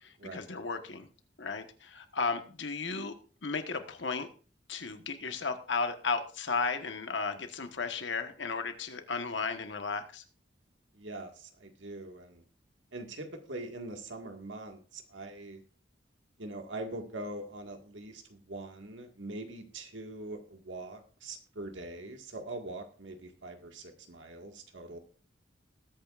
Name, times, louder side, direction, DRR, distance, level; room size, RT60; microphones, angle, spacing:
voice 1, 0.0-1.1 1.4-3.1 3.4-4.3 4.7-10.2, left 4 dB, 75° left, 7 dB, 1.3 m, -34 dB
voice 2, 10.9-12.4 12.9-15.6 16.4-25.0, right 2 dB, 85° right, 4 dB, 1.9 m, -43 dB
20.0 x 8.9 x 2.5 m, 0.39 s
head